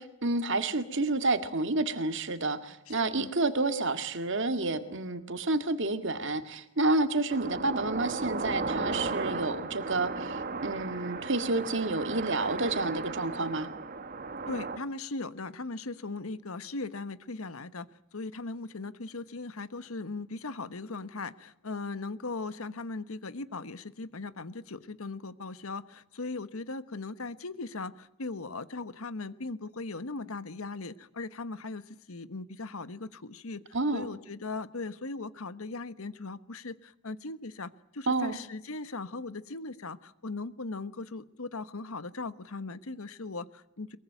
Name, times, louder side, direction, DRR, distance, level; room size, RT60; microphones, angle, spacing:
voice 1, 0.0-13.7 33.7-34.1 38.1-38.4, right 2 dB, 55° right, 9 dB, 2.0 m, -29 dB
voice 2, 2.9-3.3 14.5-33.6 33.9-44.0, left 3 dB, 75° left, 14 dB, 1.2 m, -39 dB
sound 1, 7.3-14.8, right 3 dB, 40° right, 1.4 m, -35 dB
23.0 x 22.5 x 9.2 m, 0.82 s
head